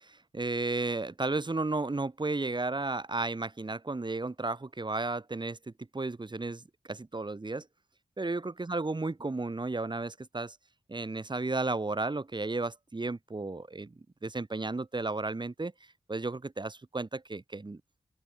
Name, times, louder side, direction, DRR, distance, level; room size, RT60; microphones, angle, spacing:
voice 1, 0.0-7.7 8.2-10.6 10.9-13.9 14.2-15.7 16.1-17.8, right 3 dB, 30° right, 1.0 m, -33 dB
open air
cardioid pair, 45°, 16 cm